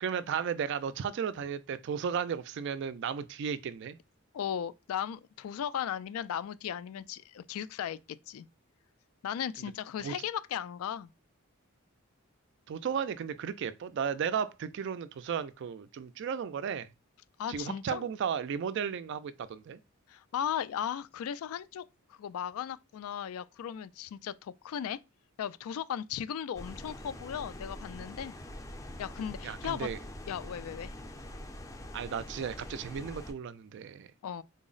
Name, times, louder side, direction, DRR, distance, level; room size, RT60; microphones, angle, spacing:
voice 1, 0.0-4.0 10.0-10.1 12.7-16.9 17.5-19.8 29.4-30.0 31.9-34.1, right 7 dB, 55° right, 0.3 m, -34 dB
voice 2, 4.3-8.0 8.3-8.5 9.2-11.1 17.4-18.0 20.1-21.8 22.1-25.0 25.4-28.3 29.0-29.9 30.3-30.9 34.2-34.4, left 9 dB, 80° left, 0.3 m, -36 dB
sound 1, 26.5-33.3, left 1 dB, 15° left, 0.4 m, -44 dB
3.8 x 2.0 x 3.8 m
head